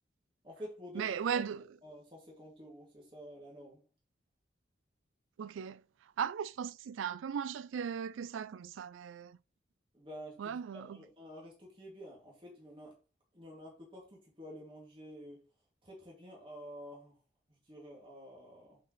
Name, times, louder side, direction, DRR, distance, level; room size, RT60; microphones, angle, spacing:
voice 1, 0.4-1.5 1.8-3.8 9.9-13.0 13.3-15.4 15.8-17.1 17.7-18.8, equal, 25° right, 2.4 m, -50 dB
voice 2, 0.9-1.7 5.4-5.8 6.2-9.4 10.4-11.0, right 7 dB, 80° right, 0.3 m, -37 dB
8.2 x 4.7 x 3.2 m
head